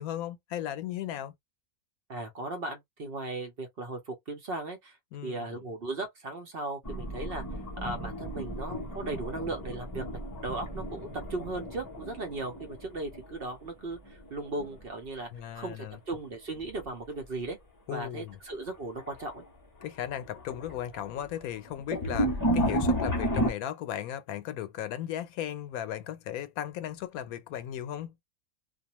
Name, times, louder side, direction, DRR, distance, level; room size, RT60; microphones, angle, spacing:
voice 1, 0.0-1.3 5.1-5.6 15.3-16.0 17.9-18.4 19.8-28.1, left 11 dB, 85° left, 1.0 m, -36 dB
voice 2, 2.1-5.0 5.2-7.4 7.8-17.6 17.9-19.4 21.9-22.0, right 2 dB, 50° right, 0.8 m, -37 dB
sound 1, 6.8-13.7 13.9-14.8 16.5-16.9 17.4-17.5 18.5-18.6 19.0-19.4 19.8-23.5, equal, 25° left, 0.4 m, -33 dB
2.5 x 2.2 x 2.9 m
omnidirectional pair, 1.5 m